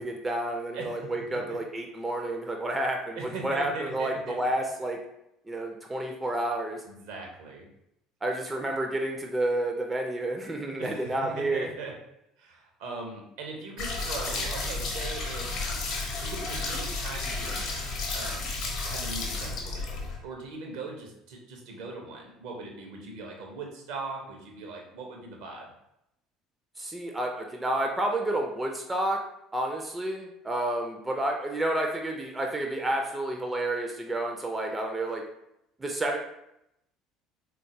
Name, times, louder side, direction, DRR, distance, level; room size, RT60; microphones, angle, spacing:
voice 1, 0.0-5.0 5.5-6.8 8.2-11.7 26.8-29.2 29.5-35.2 35.8-36.2, right 1 dB, 15° right, 2 dB, 0.4 m, -30 dB
voice 2, 0.7-1.1 1.5-1.6 3.1-4.4 6.9-7.7 10.8-11.9 12.4-15.5 16.2-17.9 18.1-25.7, right 3 dB, 60° right, 1 dB, 0.6 m, -40 dB
sound 1, 13.8-20.2, left 3 dB, 55° left, 0.8 m, -32 dB
3.7 x 2.3 x 2.5 m, 0.82 s
figure-of-eight pair, 60°, 0 cm